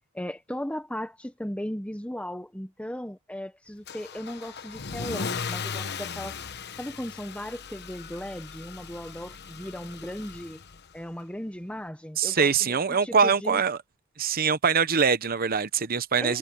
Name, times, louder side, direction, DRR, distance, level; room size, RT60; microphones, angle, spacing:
voice 1, 0.1-6.4 6.8-10.6 10.9-13.6 16.2-16.4, equal, 5° left, 1.2 m, -36 dB
Car / Engine starting / Accelerating revving vroom, 3.9-11.0, left 5 dB, 55° left, 1.1 m, -37 dB
voice 2, 12.2-13.8 14.2-16.4, right 6 dB, 45° right, 0.8 m, -23 dB
head